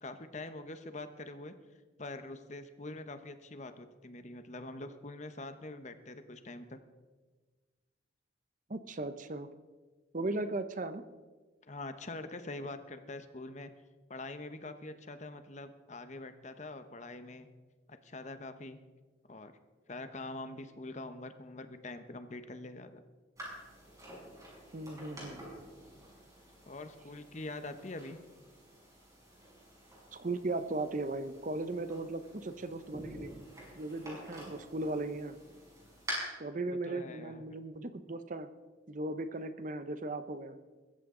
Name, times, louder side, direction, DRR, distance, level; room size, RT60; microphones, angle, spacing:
voice 1, 0.0-1.5 2.0-6.8 11.7-13.7 14.1-17.5 17.9-18.8 19.3-19.5 19.9-23.0 26.7-28.2 36.7-37.4, left 2 dB, 40° left, 9 dB, 0.9 m, -44 dB
voice 2, 8.7-9.5 10.1-11.0 24.7-25.4 30.1-33.4 33.8-35.4 36.4-38.5 38.9-40.6, right 2 dB, 45° right, 11 dB, 0.8 m, -37 dB
sound 1, 23.4-36.1, right 1 dB, 20° right, 6.4 m, -49 dB
22.5 x 14.0 x 3.8 m, 1.4 s
head